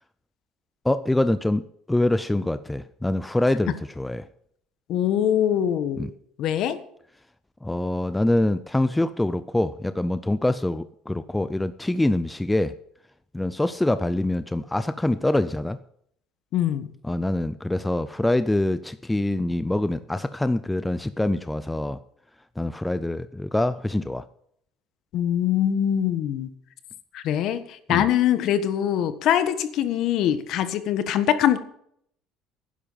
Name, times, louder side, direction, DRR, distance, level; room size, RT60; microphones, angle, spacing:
voice 1, 0.8-4.3 6.0-6.1 7.6-12.7 13.3-15.8 17.0-22.0 22.6-24.2 27.9-28.1, left 1 dB, 5° left, 13 dB, 0.4 m, -25 dB
voice 2, 4.9-6.1 6.4-6.8 16.5-16.9 25.1-26.5 27.1-31.6, left 10 dB, 55° left, 11 dB, 1.3 m, -23 dB
11.5 x 10.0 x 5.7 m, 0.68 s
cardioid pair, 150°, 0 cm